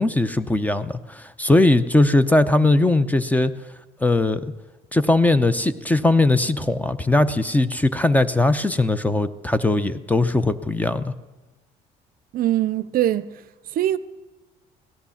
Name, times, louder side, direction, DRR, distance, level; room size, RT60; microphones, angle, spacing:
voice 1, 0.0-3.5 4.0-4.4 4.9-11.1, left 2 dB, 10° left, 0.6 m, -19 dB
voice 2, 12.3-13.3 13.7-14.0, right 13 dB, 60° right, 0.5 m, -22 dB
17.0 x 11.5 x 7.1 m
cardioid pair, 110°, 17 cm